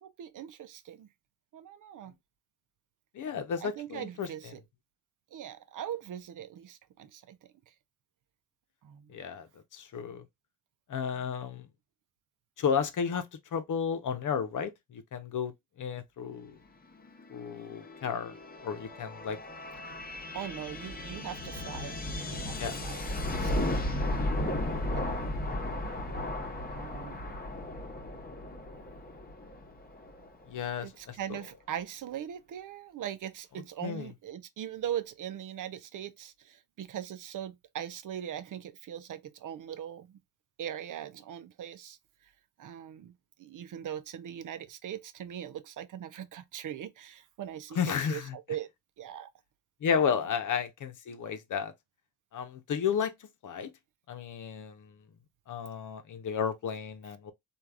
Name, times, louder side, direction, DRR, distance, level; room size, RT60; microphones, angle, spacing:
voice 1, 0.0-1.1 1.5-2.1 3.6-4.6 5.3-7.4 8.8-9.2 11.2-11.3 20.3-22.0 22.3-24.2 24.9-25.2 26.7-27.2 30.8-40.2 40.6-42.0 42.6-47.8 48.1-48.7 49.0-49.3 53.6-53.7, right 10 dB, 60° right, 0.6 m, -40 dB
voice 2, 3.1-4.3 9.1-9.5 9.7-10.2 10.9-11.7 12.6-15.5 15.8-16.5 17.3-18.3 18.6-19.4 22.6-22.7 30.5-31.4 33.8-34.1 47.8-48.4 49.8-51.7 52.3-53.1 53.4-53.7 54.1-54.9 55.5-57.3, left 7 dB, 55° left, 0.8 m, -32 dB
sound 1, 17.0-30.5, left 1 dB, 25° left, 1.0 m, -35 dB
3.2 x 2.5 x 2.3 m
supercardioid pair, 60°, 36 cm